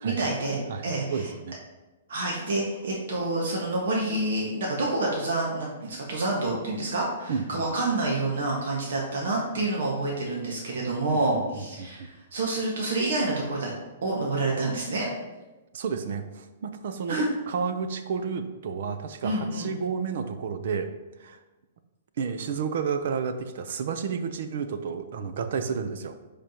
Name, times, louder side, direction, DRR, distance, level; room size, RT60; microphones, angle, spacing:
voice 1, 0.0-1.3 2.1-13.7 14.0-15.1 17.1-17.3 19.2-19.7, right 2 dB, 75° right, -3 dB, 1.7 m, -28 dB
voice 2, 0.7-1.6 7.3-7.5 11.1-12.1 15.7-20.9 21.2-21.4 22.2-26.2, right 6 dB, 55° right, 9 dB, 0.7 m, -31 dB
10.5 x 5.0 x 3.0 m, 1.1 s
hypercardioid pair, 165°, 0 cm